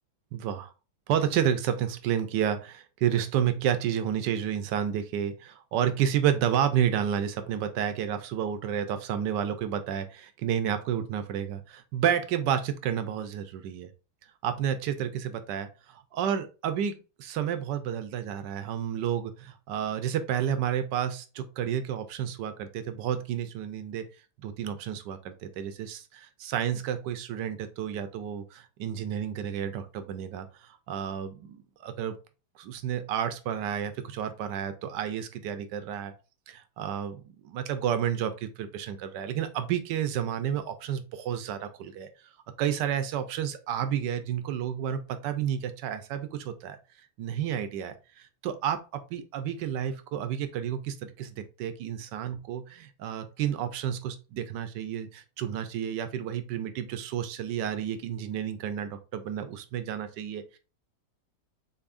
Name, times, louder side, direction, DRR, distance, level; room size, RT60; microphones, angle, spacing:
voice 1, 0.3-0.7 1.1-13.9 14.4-24.1 24.4-32.1 32.6-36.1 36.5-42.1 42.6-46.8 47.2-60.6, right 9 dB, 85° right, 10 dB, 1.3 m, -31 dB
6.9 x 2.7 x 2.5 m, 0.32 s
omnidirectional pair, 1.8 m